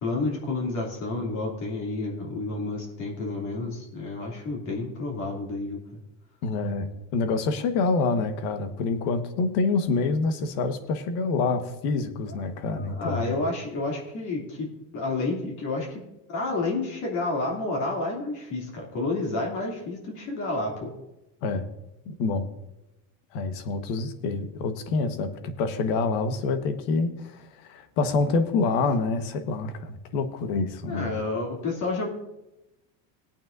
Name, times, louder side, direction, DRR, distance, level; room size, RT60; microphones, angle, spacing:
voice 1, 0.0-6.0 12.3-12.4 12.7-20.9 30.9-32.1, left 2 dB, 50° left, -2 dB, 2.9 m, -30 dB
voice 2, 6.4-13.4 21.4-21.6 22.0-22.5 23.3-31.2, left 4 dB, 70° left, 8 dB, 1.4 m, -27 dB
19.5 x 8.8 x 2.6 m, 0.94 s
cardioid pair, 135°, 38 cm